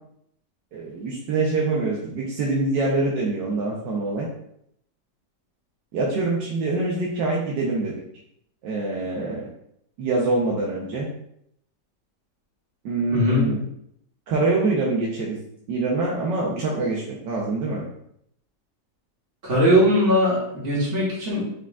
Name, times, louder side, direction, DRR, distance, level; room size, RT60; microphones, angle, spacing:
voice 1, 0.7-4.3 5.9-7.9 8.6-9.4 10.0-11.1 12.8-13.6 14.3-15.4 15.7-17.8, right 3 dB, 85° right, -4 dB, 1.4 m, -25 dB
voice 2, 13.1-13.5 19.4-21.4, equal, 65° right, -6 dB, 2.0 m, -20 dB
4.8 x 4.6 x 2.4 m, 0.72 s
omnidirectional pair, 1.8 m